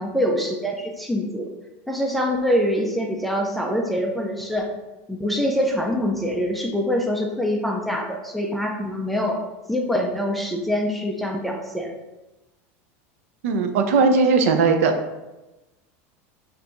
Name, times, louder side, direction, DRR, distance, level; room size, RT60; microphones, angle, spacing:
voice 1, 0.0-1.5 1.9-4.7 5.1-9.4 9.7-11.9, equal, ahead, 0 dB, 0.3 m, -24 dB
voice 2, 13.4-14.9, right 4 dB, 75° right, 6 dB, 0.5 m, -18 dB
5.4 x 2.5 x 2.9 m, 1.0 s
supercardioid pair, 170°, 7 cm